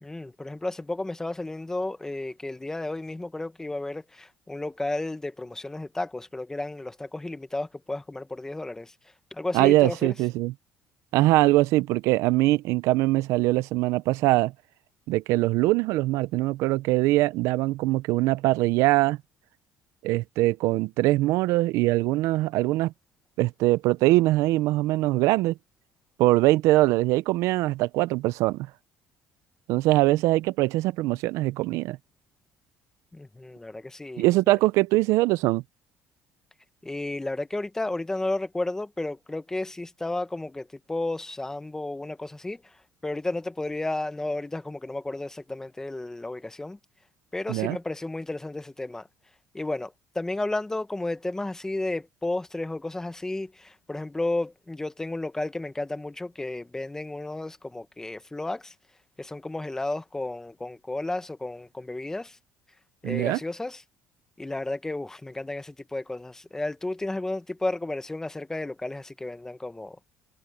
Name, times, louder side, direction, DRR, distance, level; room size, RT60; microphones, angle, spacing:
voice 1, 0.0-10.1 33.1-34.3 36.8-46.8 47.3-49.1 49.5-58.7 59.2-62.4 63.0-63.8 64.4-70.0, left 2 dB, 10° left, 1.4 m, -33 dB
voice 2, 9.5-10.5 11.1-14.5 15.1-19.2 20.0-22.9 23.4-25.6 26.2-28.7 29.7-32.0 34.2-35.6 47.5-47.8 63.0-63.4, right 18 dB, 80° right, 0.5 m, -22 dB
cardioid pair, 120°, 5 cm